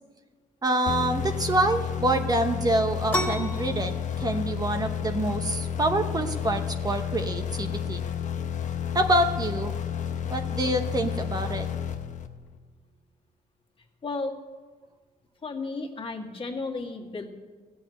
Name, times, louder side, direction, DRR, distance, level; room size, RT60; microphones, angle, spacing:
voice 1, 0.6-8.0 8.9-9.7 10.3-11.7, right 2 dB, 25° right, 6 dB, 0.9 m, -26 dB
sound 1, 0.9-12.6, left 8 dB, 60° left, 0.9 m, -31 dB
sound 2, 3.1-12.5, equal, 10° left, 1.8 m, -39 dB
voice 2, 14.0-14.3 15.4-17.3, left 3 dB, 40° left, 1 dB, 2.0 m, -33 dB
15.5 x 7.2 x 9.2 m, 1.5 s
cardioid pair, 110°, 15 cm